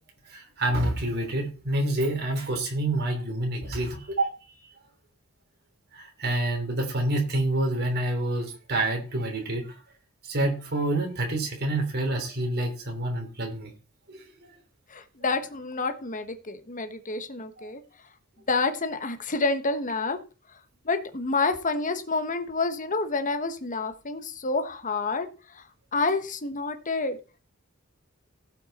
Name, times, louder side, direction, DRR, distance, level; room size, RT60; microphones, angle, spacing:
voice 1, 0.3-4.3 5.9-9.8 10.2-13.7 14.1-14.2 17.6-17.7, right 1 dB, 50° right, 2 dB, 3.3 m, -28 dB
voice 2, 14.9-17.8 18.5-20.2 20.8-25.6 25.9-27.2, left 3 dB, 40° left, 9 dB, 1.2 m, -28 dB
16.5 x 5.8 x 4.2 m, 0.34 s
head